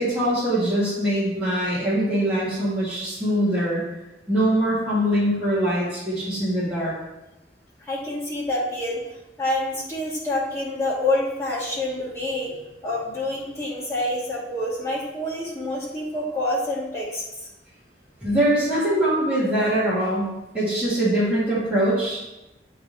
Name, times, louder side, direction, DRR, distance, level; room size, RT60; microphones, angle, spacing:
voice 1, 0.0-3.8 4.3-6.9 18.2-22.2, right 1 dB, 10° right, -11 dB, 1.7 m, -23 dB
voice 2, 7.9-9.0 9.4-12.5 12.8-17.2, left 1 dB, 15° left, -8 dB, 2.1 m, -27 dB
8.4 x 3.4 x 4.0 m, 0.97 s
head